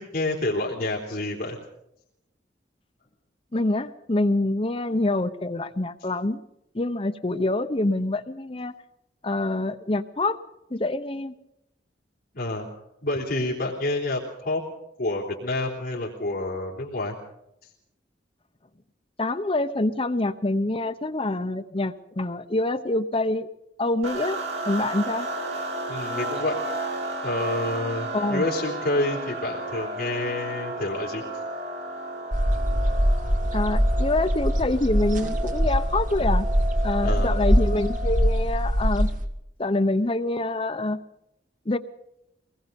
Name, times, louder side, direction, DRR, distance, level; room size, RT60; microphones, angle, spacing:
voice 1, 0.0-1.6 12.3-12.7 13.0-14.7 15.0-17.2 25.9-26.6 27.2-31.2 37.0-37.3, left 2 dB, 55° left, -3 dB, 3.6 m, -28 dB
voice 2, 3.5-6.4 6.7-8.8 9.2-10.4 10.7-11.3 19.2-23.5 23.8-24.4 24.7-25.3 28.1-28.5 33.5-36.5 36.8-39.1 39.6-41.0 41.7-41.8, left 2 dB, 30° left, 9 dB, 0.9 m, -26 dB
sound 1, 24.0-38.6, right 2 dB, 80° right, 7.0 m, -33 dB
sound 2, 32.3-39.3, equal, 50° right, 2.0 m, -23 dB
24.0 x 20.0 x 5.3 m, 0.82 s
head